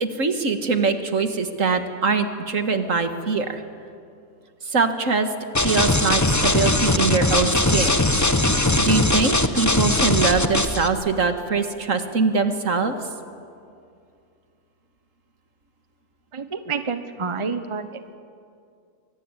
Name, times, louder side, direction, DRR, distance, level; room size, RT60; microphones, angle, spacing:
voice 1, 0.0-3.6 4.7-5.3 5.6-8.3 8.8-13.0, right 4 dB, 70° right, 7 dB, 2.0 m, -23 dB
sound 1, 5.5-10.9, left 2 dB, 15° left, 1.0 m, -20 dB
voice 2, 16.3-18.1, right 5 dB, 25° right, 9 dB, 1.1 m, -29 dB
24.0 x 23.5 x 9.8 m, 2.4 s
omnidirectional pair, 1.4 m